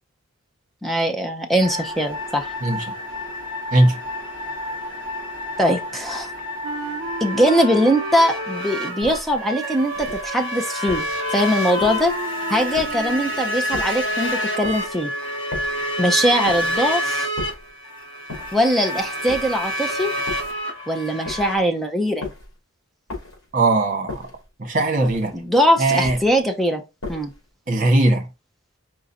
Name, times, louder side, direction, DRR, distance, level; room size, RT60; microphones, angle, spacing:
voice 1, 0.8-2.5 5.6-6.3 7.2-12.1 12.5-15.1 16.0-17.3 18.5-20.1 20.9-22.2 25.3-26.8 27.1-27.3, equal, ahead, 0.7 m, -21 dB
sound 1, 1.6-21.6, equal, 60° left, 1.5 m, -29 dB
Wind instrument woodwind instrument, 6.6-9.1 9.4-13.4, right 4 dB, 80° right, 0.6 m, -33 dB
sound 2, 9.0-9.4 9.9-10.3 10.9-11.2 11.8-12.2 12.7-13.2 13.7-14.1 14.6-15.0 15.5-15.9 16.5-16.8 17.4-17.7 18.3-18.7 19.3-19.7 20.3-20.6 21.2-21.7 22.2-22.6 23.1-23.5 24.1-24.5 25.0-25.4 26.0-26.4 27.0-27.4, left 3 dB, 80° left, 2.9 m, -36 dB
voice 2, 23.5-24.2 24.6-25.3 25.8-26.2 27.7-28.3, right 2 dB, 40° right, 1.4 m, -19 dB
4.9 x 3.8 x 2.8 m
head